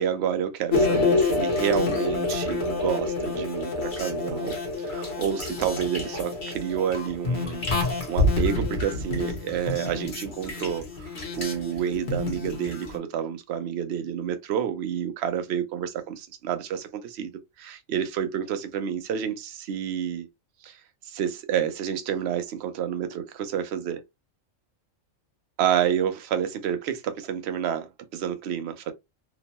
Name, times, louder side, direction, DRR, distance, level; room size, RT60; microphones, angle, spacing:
voice 1, 0.0-17.3 17.6-20.3 20.6-20.8 21.1-24.0 25.6-28.9, right 9 dB, 65° right, 0.7 m, -29 dB
sound 1, 0.7-13.0, left 3 dB, 45° left, 1.0 m, -28 dB
2.9 x 2.1 x 2.7 m
omnidirectional pair, 1.4 m